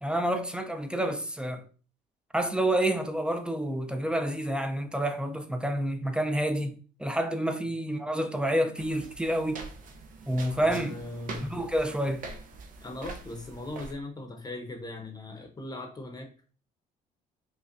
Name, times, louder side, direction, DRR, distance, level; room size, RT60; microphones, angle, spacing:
voice 1, 0.0-1.6 2.3-6.7 7.0-9.7 10.3-10.9 11.5-12.3, right 1 dB, 5° right, 0.4 m, -28 dB
sound 1, 8.8-13.9, right 3 dB, 50° right, 0.6 m, -44 dB
voice 2, 10.6-11.5 12.8-16.5, left 2 dB, 25° left, 0.7 m, -39 dB
5.0 x 2.2 x 2.5 m
cardioid pair, 110°, 17 cm